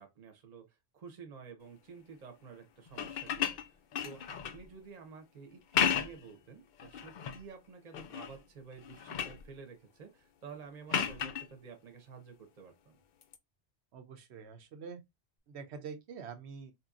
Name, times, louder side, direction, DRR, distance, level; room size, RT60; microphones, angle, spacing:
voice 1, 0.0-13.0, right 5 dB, 40° right, 0.9 m, -51 dB
sound 1, 2.9-4.7 5.6-6.3 6.8-7.4 7.9-8.4 8.7-9.4 10.9-11.5 13.2-13.4, left 8 dB, 60° left, 0.5 m, -34 dB
voice 2, 13.9-15.0 15.5-16.7, right 6 dB, 75° right, 1.0 m, -45 dB
4.5 x 2.8 x 2.4 m
omnidirectional pair, 1.1 m